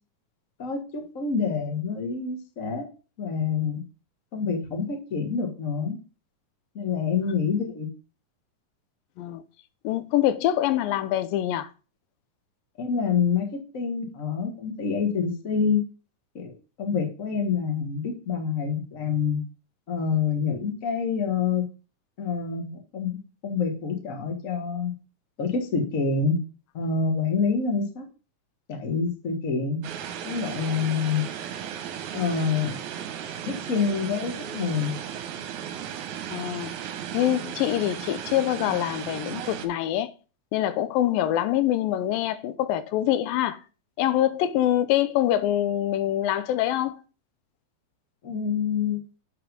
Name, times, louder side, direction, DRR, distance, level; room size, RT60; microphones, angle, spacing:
voice 1, 0.6-2.8 3.2-3.8 4.3-6.0 6.7-7.9 12.8-13.5 13.7-15.8 16.3-16.5 16.8-19.4 19.9-21.6 22.2-23.2 23.4-24.9 25.4-26.4 26.7-28.0 28.7-29.8 30.2-31.2 32.1-32.8 33.4-34.9 48.2-49.0, left 5 dB, 50° left, 0.9 m, -27 dB
voice 2, 9.8-11.7 36.3-36.7 37.1-40.1 40.5-43.6 44.0-47.0, left 12 dB, 85° left, 2.4 m, -25 dB
sound 1, 29.8-39.7, right 9 dB, 70° right, 2.1 m, -35 dB
7.2 x 5.3 x 5.2 m
omnidirectional pair, 4.0 m